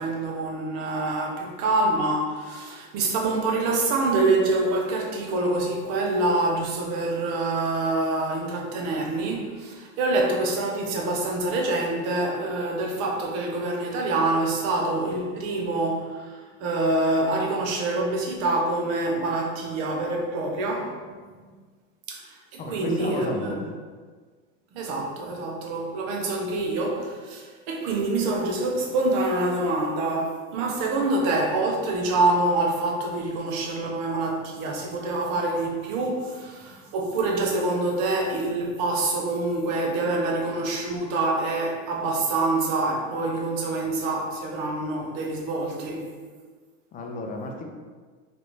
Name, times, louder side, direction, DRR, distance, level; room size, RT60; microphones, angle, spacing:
voice 1, 0.0-21.0 21.4-21.5 22.1-23.7 24.7-46.0, right 2 dB, 60° right, 0 dB, 0.8 m, -26 dB
voice 2, 22.6-23.7 46.9-47.6, left 2 dB, 25° left, 2 dB, 0.4 m, -32 dB
3.1 x 2.5 x 3.1 m, 1.5 s
supercardioid pair, 115°, 38 cm